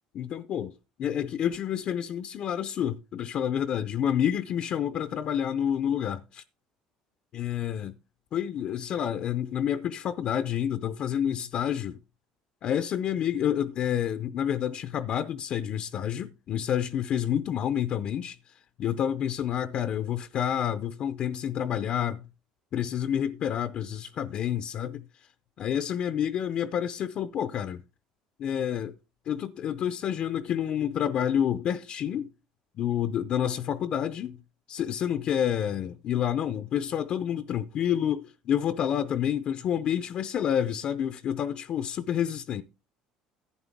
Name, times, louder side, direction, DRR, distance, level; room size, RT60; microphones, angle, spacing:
voice 1, 0.1-0.7 1.0-6.4 7.3-8.0 8.3-12.0 12.6-18.4 18.8-22.3 22.7-25.0 25.6-27.8 28.4-29.0 29.3-32.3 32.8-34.4 34.7-42.6, left 9 dB, 50° left, 0.5 m, -29 dB
11.5 x 8.5 x 3.6 m
cardioid pair, 115°, 2 cm